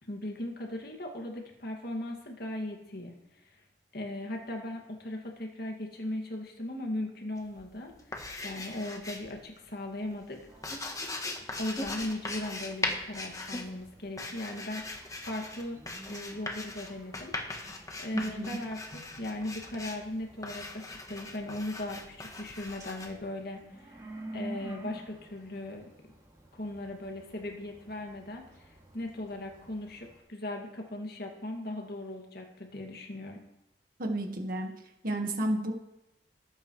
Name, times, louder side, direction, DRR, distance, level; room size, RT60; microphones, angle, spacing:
voice 1, 0.0-3.6 3.9-10.4 11.6-15.8 16.1-17.3 17.6-24.0 24.3-25.9 26.5-33.4, left 1 dB, 60° left, 1 dB, 2.3 m, -38 dB
sound 1, 7.4-9.4 9.7-23.1, left 2 dB, 20° left, 1.3 m, -40 dB
sound 2, 10.5-30.2, right 1 dB, 20° right, 2.6 m, -50 dB
voice 2, 34.0-34.7 35.0-35.7, right 1 dB, 55° right, 3 dB, 1.8 m, -31 dB
19.5 x 9.1 x 3.3 m, 0.89 s
head